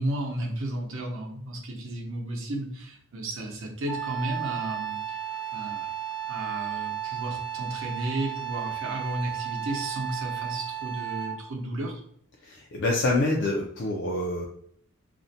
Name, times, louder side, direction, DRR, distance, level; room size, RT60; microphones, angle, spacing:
voice 1, 0.0-5.2 5.5-5.9 6.3-12.0, right 1 dB, 65° right, 1 dB, 0.7 m, -33 dB
Wind instrument woodwind instrument, 3.9-11.5, right 10 dB, 85° left, 0.7 m, -34 dB
voice 2, 12.4-14.5, left 2 dB, 55° left, -1 dB, 0.4 m, -26 dB
2.5 x 2.1 x 2.7 m, 0.64 s
head